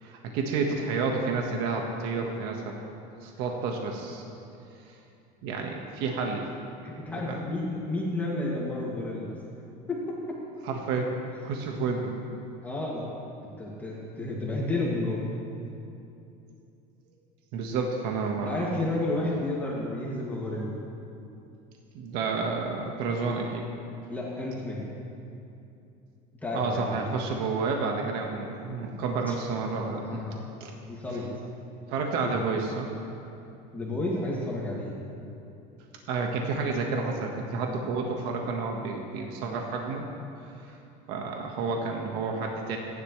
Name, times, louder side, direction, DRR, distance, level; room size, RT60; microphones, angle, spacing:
voice 1, 0.0-2.7 3.2-4.2 5.4-6.5 7.2-7.5 10.6-11.1 11.4-12.2 17.5-18.9 21.9-23.7 26.5-30.2 30.6-30.7 31.9-32.9 36.1-40.1 40.6-40.8 41.1-42.8, right 4 dB, 65° right, 1 dB, 1.6 m, -30 dB
voice 2, 6.8-9.3 9.9-10.4 12.6-13.0 13.6-15.3 18.4-20.8 24.1-24.9 26.4-27.0 28.4-28.6 29.3-29.4 30.0-30.4 30.9-31.3 32.2-32.3 33.7-35.0, left 2 dB, 10° left, -5 dB, 2.3 m, -31 dB
28.0 x 11.0 x 3.3 m, 2.7 s
cardioid pair, 150°, 18 cm